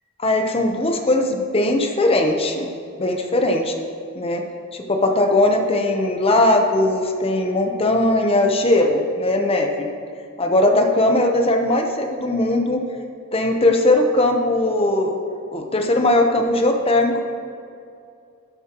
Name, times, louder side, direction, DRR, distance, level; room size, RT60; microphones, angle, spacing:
voice 1, 0.2-2.7 3.0-3.7 4.1-4.4 4.7-9.9 10.4-12.8 13.3-15.2 15.5-17.2, left 1 dB, 25° left, 4 dB, 0.8 m, -19 dB
12.5 x 9.8 x 3.0 m, 2.5 s
head